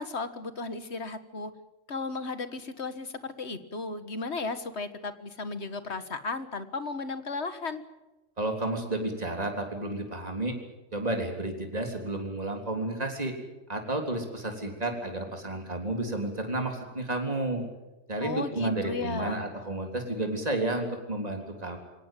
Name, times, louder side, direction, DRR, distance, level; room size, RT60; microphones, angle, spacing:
voice 1, 0.0-1.5 1.9-7.8 18.2-19.5, left 3 dB, 60° left, 11 dB, 1.8 m, -35 dB
voice 2, 8.4-10.6 10.9-13.3 13.7-17.6 18.1-21.8, right 2 dB, 30° right, 3 dB, 3.7 m, -31 dB
24.0 x 18.0 x 9.2 m, 1.0 s
omnidirectional pair, 1.3 m